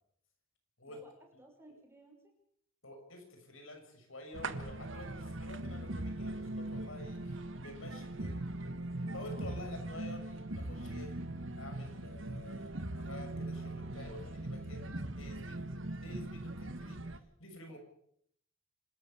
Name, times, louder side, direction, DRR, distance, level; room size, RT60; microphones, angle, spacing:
voice 1, 1.4-2.2 17.7-17.8, right 2 dB, 10° right, 2 dB, 6.1 m, -57 dB
voice 2, 2.8-8.4 9.1-11.2 11.6-17.0 17.4-17.8, left 1 dB, 75° left, 5 dB, 6.6 m, -49 dB
sound 1, 4.3-17.2, right 1 dB, 65° right, 1.6 m, -40 dB
27.0 x 13.5 x 8.5 m, 0.69 s
head